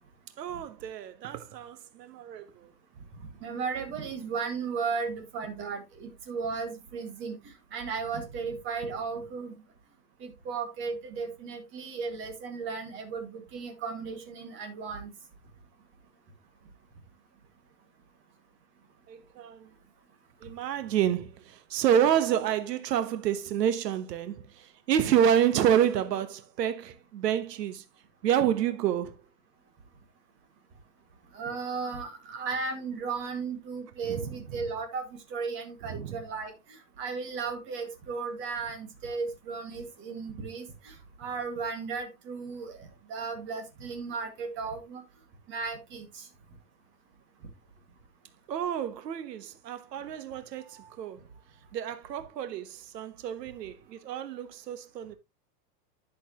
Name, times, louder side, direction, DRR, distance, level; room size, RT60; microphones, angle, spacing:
voice 1, 0.4-2.7 19.1-19.7 20.4-27.8 28.2-29.2 34.0-34.6 35.9-36.2 48.5-51.2 51.7-55.1, right 9 dB, 80° right, 1.2 m, -29 dB
voice 2, 3.4-7.4 7.7-9.5 10.2-15.1 31.3-45.0 45.5-46.3, right 5 dB, 25° right, 1.9 m, -35 dB
11.0 x 6.5 x 2.9 m
supercardioid pair, 165°, 48 cm